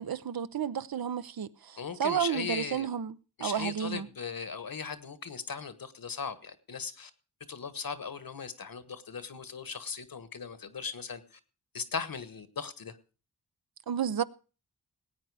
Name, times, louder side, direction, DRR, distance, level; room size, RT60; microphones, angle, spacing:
voice 1, 0.0-4.1 13.9-14.2, right 8 dB, 70° right, 0.7 m, -32 dB
voice 2, 1.8-2.9 3.4-7.1 7.5-11.2 11.7-13.0, left 6 dB, 65° left, 1.4 m, -38 dB
18.5 x 8.8 x 4.8 m
cardioid pair, 55°, 37 cm